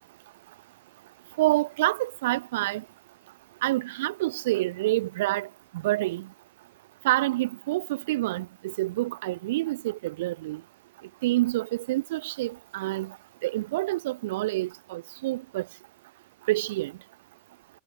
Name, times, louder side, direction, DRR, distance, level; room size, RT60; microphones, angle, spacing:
voice 1, 1.4-2.8 3.6-5.5 5.8-6.3 7.0-10.6 11.2-13.2 13.4-15.6 16.5-16.9, right 17 dB, 55° right, 0.6 m, -27 dB
figure-of-eight pair, 90°, 0 cm